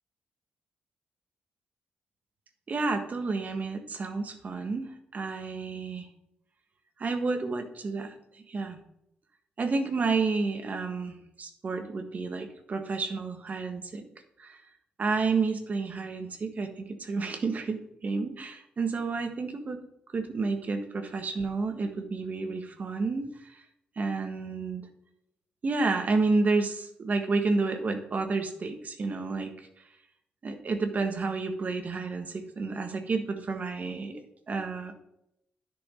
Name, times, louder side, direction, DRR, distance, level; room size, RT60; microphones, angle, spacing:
voice 1, 2.7-6.1 7.0-8.1 8.5-8.8 9.6-14.0 14.4-14.6 15.0-19.8 20.1-23.6 24.0-24.8 25.6-29.5 30.4-34.9, right 3 dB, 45° right, 6 dB, 1.5 m, -30 dB
10.5 x 6.2 x 5.1 m, 0.78 s
cardioid pair, 75°, 4 cm